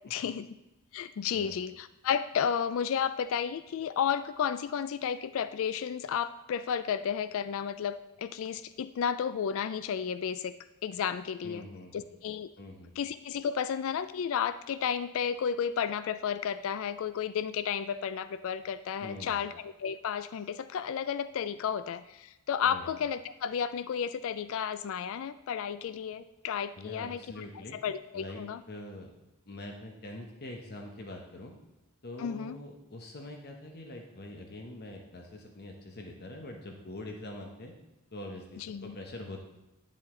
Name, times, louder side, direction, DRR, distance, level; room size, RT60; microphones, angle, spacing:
voice 1, 0.1-0.5 0.9-10.5 10.8-11.6 11.9-12.5 13.0-27.4 27.7-28.6 32.2-32.6 38.6-39.0, left 7 dB, 60° left, 14 dB, 0.3 m, -32 dB
voice 2, 11.4-12.1 12.6-12.9 19.0-19.4 22.7-22.9 26.8-27.8 28.1-29.1 29.5-31.5 32.0-37.7 38.1-39.4, left 1 dB, 45° left, 2 dB, 0.9 m, -44 dB
10.0 x 7.4 x 3.7 m, 0.96 s
head